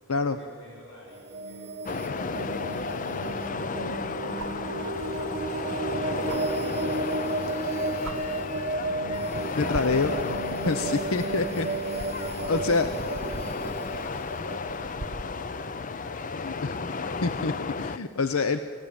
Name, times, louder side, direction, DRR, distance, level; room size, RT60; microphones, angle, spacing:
voice 1, 0.2-1.8 3.7-5.4 5.9-6.8 12.4-17.6, equal, 55° left, -4 dB, 5.9 m, -50 dB
sound 1, 1.1-15.8, right 3 dB, 30° right, 1.2 m, -33 dB
sound 2, 1.8-18.0, left 4 dB, 35° left, 0.5 m, -33 dB
sound 3, 4.4-4.7 6.3-6.4 7.5-7.7 8.0-8.2 9.1-9.4 9.7-15.4 17.1-17.2, right 2 dB, 55° right, 1.1 m, -42 dB
voice 2, 9.6-10.1 10.7-11.7 12.5-12.9 16.4-16.7 17.2-18.6, left 3 dB, 75° left, 10 dB, 0.7 m, -26 dB
29.5 x 15.0 x 8.9 m, 2.5 s
head